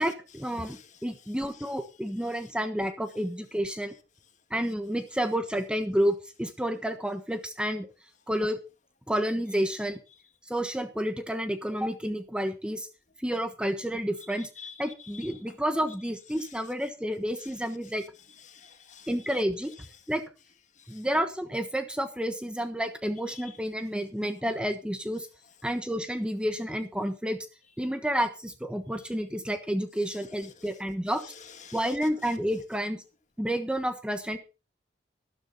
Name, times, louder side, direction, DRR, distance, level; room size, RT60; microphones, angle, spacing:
voice 1, 0.0-4.0 4.5-7.9 8.3-8.6 9.1-10.0 10.5-12.9 13.2-14.5 14.8-18.0 19.1-19.7 20.1-20.2 20.9-25.3 25.6-27.4 27.8-31.2 31.7-33.0 33.4-34.4, equal, 5° right, 1.2 m, -30 dB
voice 2, 0.6-1.7 2.2-2.5 14.4-15.5 16.3-16.6 17.4-17.5 17.8-17.9 18.3-19.3 19.8-19.9 20.8-21.1 23.3-23.6 30.1-30.7 31.2-32.4, left 7 dB, 40° left, 1.9 m, -50 dB
13.0 x 12.5 x 4.2 m
head